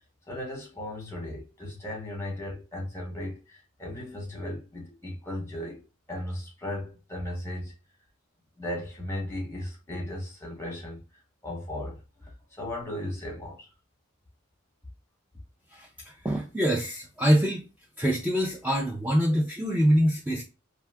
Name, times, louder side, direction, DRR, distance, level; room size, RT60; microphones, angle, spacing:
voice 1, 0.3-5.8 6.1-7.7 8.6-11.0 11.4-13.7, left 1 dB, 15° left, 1.0 m, -36 dB
voice 2, 15.7-17.7 18.0-20.4, equal, 10° right, 0.4 m, -25 dB
2.6 x 2.3 x 3.3 m
head